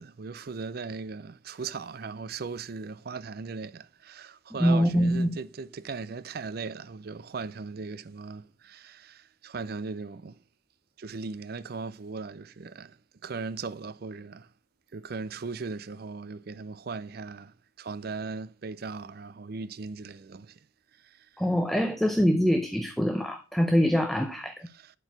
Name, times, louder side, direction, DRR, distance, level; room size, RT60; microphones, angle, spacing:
voice 1, 0.0-10.4 11.0-13.0 13.2-14.5 14.9-20.6 21.0-21.3 24.7-24.9, right 4 dB, 50° right, 0.4 m, -38 dB
voice 2, 4.6-5.3 21.4-24.7, equal, ahead, 0.5 m, -24 dB
11.5 x 4.7 x 5.8 m
head